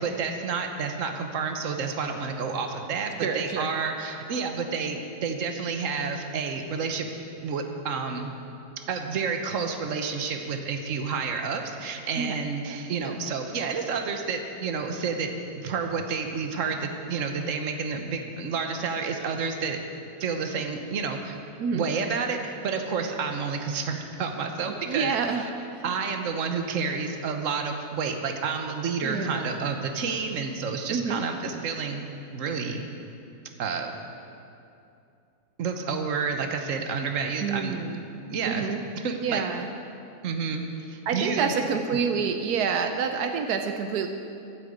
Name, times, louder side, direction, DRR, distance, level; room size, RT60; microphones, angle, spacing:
voice 1, 0.0-7.1 7.4-8.3 8.9-19.8 20.2-21.4 21.7-25.1 25.8-32.8 33.6-33.9 35.6-37.7 38.3-38.6 39.0-39.4 40.2-40.6 40.9-41.5, right 5 dB, 60° right, 5 dB, 1.4 m, -30 dB
voice 2, 3.2-3.7 12.2-12.4 13.0-13.2 21.6-21.9 24.7-25.8 29.0-29.8 30.9-31.2 37.4-38.0 38.4-38.8 39.2-39.7 41.1-44.1, right 6 dB, 85° right, 6 dB, 1.3 m, -28 dB
12.5 x 9.1 x 8.0 m, 2.6 s
omnidirectional pair, 1.6 m